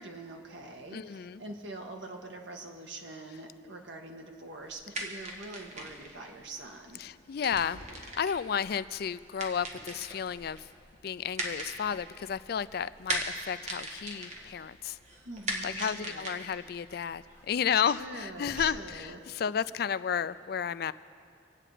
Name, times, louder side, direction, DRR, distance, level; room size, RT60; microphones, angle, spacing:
voice 1, 0.0-7.0 15.2-16.3 18.0-19.4, right 2 dB, 75° right, 2 dB, 1.6 m, -44 dB
voice 2, 0.9-1.4 7.0-10.7 11.0-15.0 15.6-20.9, left 7 dB, 55° left, 15 dB, 0.4 m, -32 dB
sound 1, 4.6-18.7, right 1 dB, 40° right, 1.6 m, -41 dB
26.0 x 8.8 x 5.0 m, 2.3 s
head